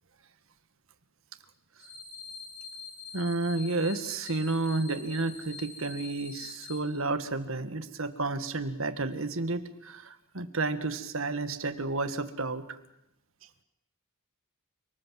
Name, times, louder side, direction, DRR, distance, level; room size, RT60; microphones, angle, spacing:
sound 1, 1.8-6.8, left 4 dB, 20° left, 6.1 m, -45 dB
voice 1, 3.1-12.8, right 3 dB, 65° right, 11 dB, 1.7 m, -31 dB
29.5 x 19.5 x 7.6 m, 0.84 s
head